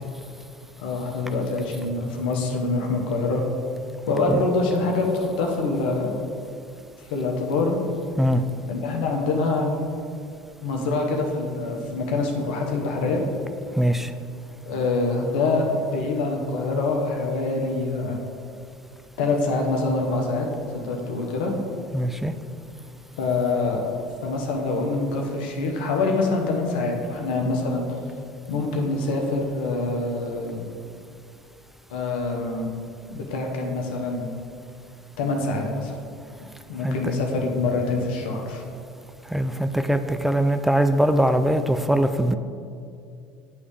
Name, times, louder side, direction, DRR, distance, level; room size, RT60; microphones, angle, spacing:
voice 1, 0.8-3.4 4.1-6.1 7.1-7.8 8.7-9.7 10.6-13.2 14.6-18.2 19.2-20.5 20.7-21.5 23.2-23.9 24.2-27.9 28.5-30.6 31.9-32.7 33.1-34.3 35.2-36.0 36.7-38.6, left 3 dB, 80° left, 2 dB, 1.0 m, -25 dB
voice 2, 13.7-14.1 21.9-22.3 36.8-37.0 39.3-42.3, right 1 dB, 5° right, 8 dB, 0.3 m, -21 dB
9.3 x 3.3 x 3.4 m, 2.4 s
hypercardioid pair, 80°, 5 cm